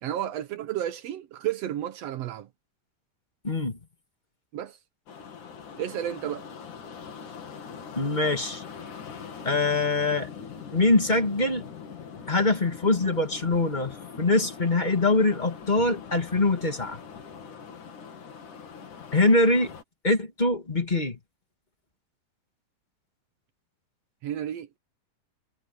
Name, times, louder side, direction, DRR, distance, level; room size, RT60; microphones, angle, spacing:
voice 1, 0.0-2.5 4.5-4.8 5.8-6.5 24.2-24.8, right 11 dB, 75° right, 1.5 m, -32 dB
voice 2, 3.4-3.8 7.9-8.6 9.4-10.3 10.7-11.7 12.3-17.0 19.1-19.7 20.0-21.2, left 2 dB, 20° left, 1.6 m, -23 dB
sound 1, 5.1-19.8, left 6 dB, 65° left, 4.3 m, -42 dB
omnidirectional pair, 3.9 m